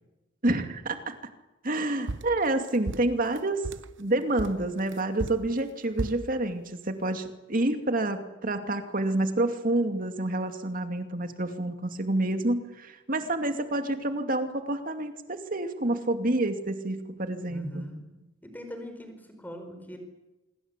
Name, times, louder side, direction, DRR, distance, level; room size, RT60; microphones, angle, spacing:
voice 1, 0.4-1.1 1.6-3.6 4.0-17.8, right 2 dB, 45° right, 6 dB, 2.5 m, -28 dB
sound 1, 2.1-3.9 4.4-6.3, right 2 dB, 80° right, 0.9 m, -35 dB
voice 2, 17.5-18.1 18.4-20.0, left 1 dB, 10° left, 6 dB, 4.9 m, -41 dB
26.0 x 23.0 x 8.3 m, 1.1 s
head